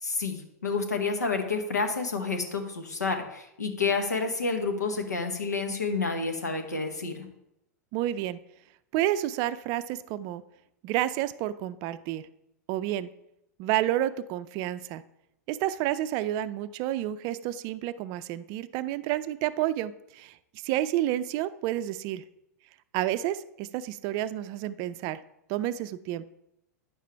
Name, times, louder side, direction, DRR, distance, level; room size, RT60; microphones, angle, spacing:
voice 1, 0.0-7.3, left 4 dB, 85° left, 5 dB, 1.2 m, -29 dB
voice 2, 7.9-8.4 8.9-10.4 10.8-12.3 12.7-13.1 13.6-15.0 15.5-20.4 20.6-22.2 22.9-25.2 25.5-26.2, right 13 dB, 45° right, 15 dB, 0.4 m, -30 dB
9.5 x 6.5 x 3.4 m, 0.83 s
hypercardioid pair, 100°, 9 cm